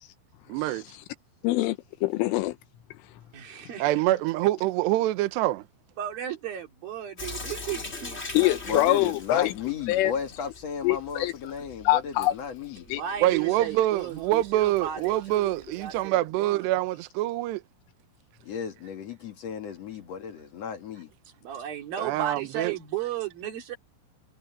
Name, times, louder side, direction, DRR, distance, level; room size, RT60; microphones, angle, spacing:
voice 1, 0.5-0.9 3.8-5.6 13.2-17.6 22.0-22.7, right 15 dB, 75° right, 2.8 m, -25 dB
voice 2, 1.4-2.6 8.4-9.5 9.9-10.1 10.8-11.3 11.9-12.3 12.9-13.0, left 16 dB, 85° left, 3.5 m, -24 dB
voice 3, 3.3-3.9 6.0-9.1 12.9-16.7 20.9-21.0 21.4-23.8, right 10 dB, 50° right, 4.3 m, -35 dB
Sink (filling or washing) / Drip, 7.2-16.1, left 3 dB, 30° left, 1.2 m, -43 dB
voice 4, 8.7-12.9 18.4-21.1, left 7 dB, 60° left, 1.7 m, -34 dB
omnidirectional pair, 5.7 m